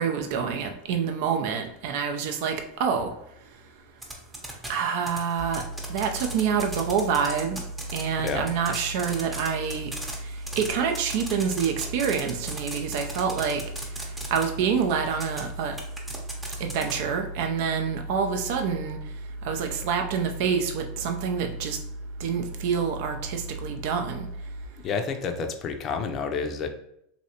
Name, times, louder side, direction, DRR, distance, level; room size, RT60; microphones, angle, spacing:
voice 1, 0.0-3.1 4.7-5.6 5.9-7.6 7.9-9.9 10.6-13.6 14.3-15.8 16.6-19.0 19.4-21.8 22.2-24.3, right 7 dB, 65° right, 5 dB, 0.5 m, -27 dB
sound 1, 4.0-4.7 5.1-8.0 8.3-14.4 15.1-15.4 15.8-17.0, right 2 dB, 15° right, 0.8 m, -36 dB
sound 2, 5.4-24.7, right 1 dB, 40° right, 1.0 m, -38 dB
voice 2, 24.8-26.7, left 5 dB, 40° left, 6 dB, 0.5 m, -29 dB
3.0 x 2.7 x 2.8 m, 0.75 s
hypercardioid pair, 105°, 0 cm